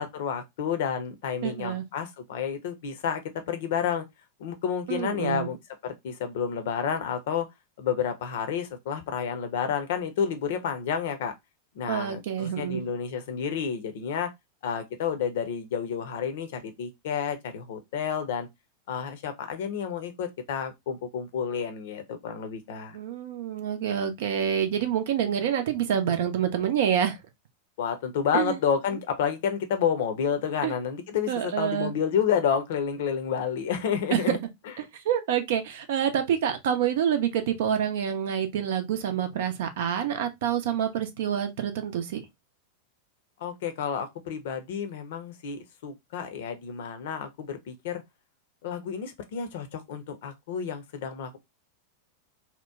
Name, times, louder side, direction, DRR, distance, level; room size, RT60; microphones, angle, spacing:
voice 1, 0.0-3.2 3.5-4.0 4.4-5.6 5.8-7.5 7.8-11.3 11.7-14.3 14.6-18.5 18.9-23.0 27.8-34.4 43.4-48.0 48.6-51.4, left 7 dB, 55° left, 0.6 m, -30 dB
voice 2, 1.4-1.8 4.9-5.5 11.9-12.8 22.9-27.2 28.3-28.6 30.6-30.7 31.3-31.9 34.1-34.2 34.8-42.2, right 9 dB, 55° right, 0.6 m, -27 dB
2.9 x 2.1 x 3.5 m
figure-of-eight pair, 90°, 0 cm